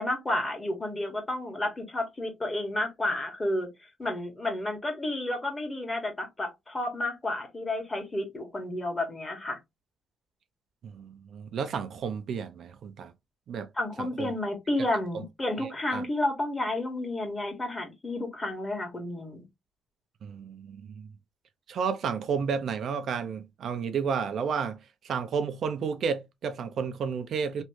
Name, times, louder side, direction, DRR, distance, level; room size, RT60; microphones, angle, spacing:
voice 1, 0.0-3.7 4.0-9.6 13.8-19.4, left 1 dB, 20° left, 1.5 m, -31 dB
voice 2, 10.8-13.1 13.5-13.7 14.0-14.3 15.6-16.0 20.2-21.1 21.7-27.6, right 6 dB, 65° right, 0.5 m, -32 dB
3.1 x 2.6 x 3.1 m
cardioid pair, 90°, 0 cm